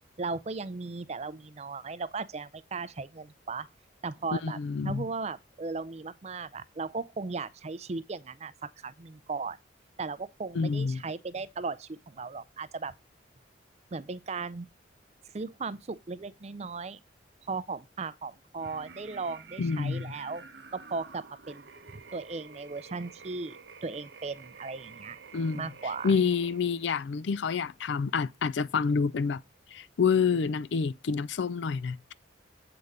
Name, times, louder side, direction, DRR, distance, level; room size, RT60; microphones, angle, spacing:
voice 1, 0.2-3.7 4.0-9.6 10.0-12.9 13.9-14.7 15.3-17.0 17.5-20.5 20.7-21.7 21.9-25.2 25.5-26.2, right 4 dB, 35° right, 0.4 m, -37 dB
voice 2, 4.4-5.1 10.5-11.0 19.6-20.1 25.3-25.7 26.0-29.4 29.7-32.0, left 5 dB, 70° left, 0.4 m, -28 dB
sound 1, 18.6-26.9, right 5 dB, 60° right, 0.9 m, -50 dB
7.8 x 3.6 x 6.6 m
head